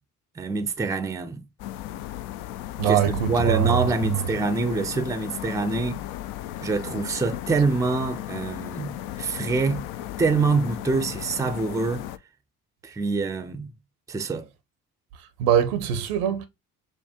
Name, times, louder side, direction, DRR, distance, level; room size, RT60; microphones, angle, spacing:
voice 1, 0.4-1.4 2.9-3.0 3.3-6.0 6.6-9.8 10.2-12.1 12.8-13.7 14.1-14.5, right 3 dB, 10° right, 0.4 m, -25 dB
sound 1, 1.6-12.2, left 13 dB, 60° left, 0.5 m, -35 dB
voice 2, 2.8-4.2 15.4-16.5, right 9 dB, 75° right, 0.7 m, -23 dB
5.4 x 2.2 x 2.8 m
hypercardioid pair, 50°, 46 cm